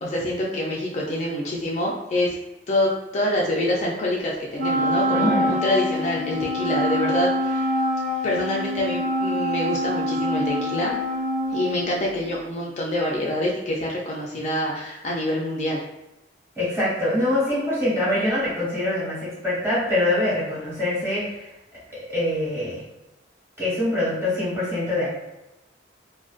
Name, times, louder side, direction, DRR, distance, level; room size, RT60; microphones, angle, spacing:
voice 1, 0.0-2.3 2.7-7.7 8.2-10.9 11.5-15.8, left 1 dB, 40° left, -3 dB, 0.3 m, -26 dB
Wind instrument woodwind instrument, 4.6-12.2, equal, 50° right, 0.7 m, -25 dB
voice 2, 5.1-5.5 16.6-21.3 21.9-22.8 23.6-25.1, left 1 dB, 15° right, -9 dB, 1.0 m, -24 dB
2.5 x 2.1 x 2.3 m, 0.93 s
head